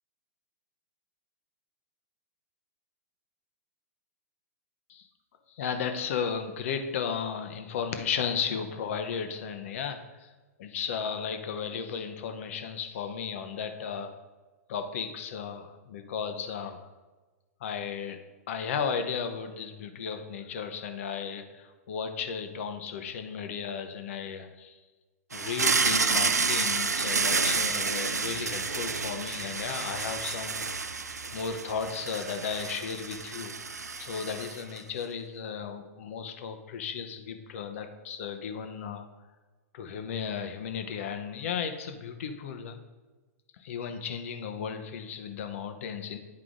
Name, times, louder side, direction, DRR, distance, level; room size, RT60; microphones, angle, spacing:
voice 1, 5.5-10.3 10.6-14.1 14.7-16.9 17.6-24.8 25.3-30.9 31.3-39.1 39.7-42.8 43.6-46.2, left 6 dB, 55° left, 7 dB, 0.9 m, -35 dB
sound 1, 25.3-34.8, right 4 dB, 85° right, 0.4 m, -29 dB
9.6 x 4.8 x 3.7 m, 1.3 s
figure-of-eight pair, 105°, 9 cm